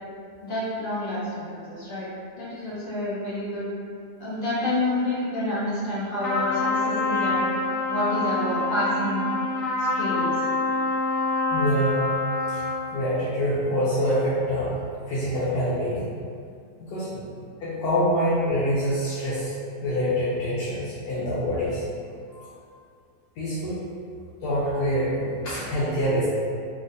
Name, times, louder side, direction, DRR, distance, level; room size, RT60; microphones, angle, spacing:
voice 1, 0.4-3.7 4.2-7.4 7.9-9.3 9.8-10.4 17.1-17.2 25.2-25.3, left 1 dB, 45° left, -10 dB, 0.7 m, -29 dB
Trumpet, 6.2-12.9, left 3 dB, 70° left, 0.9 m, -26 dB
voice 2, 11.5-12.1 12.5-12.6 12.9-14.8 15.1-16.1 16.8-17.1 17.6-19.5 19.8-21.8 22.3-22.5 23.4-23.8 24.4-26.2, equal, 90° left, -10 dB, 1.2 m, -25 dB
3.5 x 2.5 x 2.6 m, 2.3 s
omnidirectional pair, 1.6 m